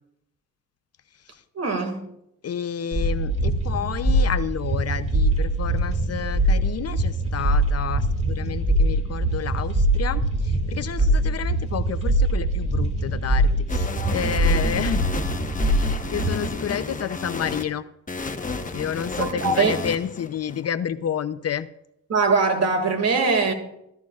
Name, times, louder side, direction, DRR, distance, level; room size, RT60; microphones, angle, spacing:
voice 1, 1.6-2.1 19.2-19.8 22.1-23.5, right 4 dB, 50° right, 2.3 m, -22 dB
voice 2, 2.4-15.1 15.6-17.8 18.7-21.7, left 8 dB, 45° left, 0.6 m, -30 dB
sound 1, 2.9-16.5, right 1 dB, 20° right, 2.4 m, -23 dB
sound 2, 13.7-17.6 18.1-20.6, left 3 dB, 25° left, 1.2 m, -31 dB
15.0 x 14.0 x 2.4 m
cardioid pair, 75°, 34 cm